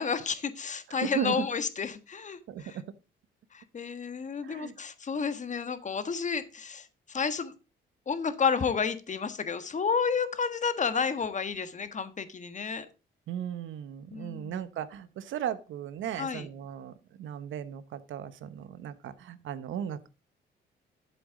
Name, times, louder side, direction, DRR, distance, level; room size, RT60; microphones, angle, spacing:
voice 1, 0.0-2.8 3.5-7.5 8.1-12.8 14.1-14.7 16.2-16.5, left 6 dB, 40° left, 11 dB, 1.4 m, -31 dB
voice 2, 1.0-1.4 2.5-2.8 4.4-4.7 13.3-20.1, right 9 dB, 75° right, 14 dB, 1.1 m, -36 dB
11.5 x 7.7 x 3.8 m, 0.31 s
cardioid pair, 90°, 20 cm